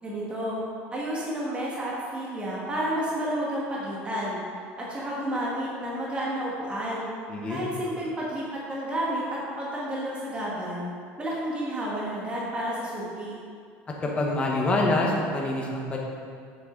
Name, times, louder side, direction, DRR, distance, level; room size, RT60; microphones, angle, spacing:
voice 1, 0.0-0.6 0.9-4.4 4.8-7.1 7.5-10.9 11.2-13.3, right 1 dB, 20° right, -6 dB, 1.7 m, -31 dB
voice 2, 7.3-7.6 14.0-16.0, left 2 dB, 20° left, -2 dB, 1.2 m, -26 dB
7.6 x 6.5 x 3.9 m, 2.2 s
cardioid pair, 130°, 6 cm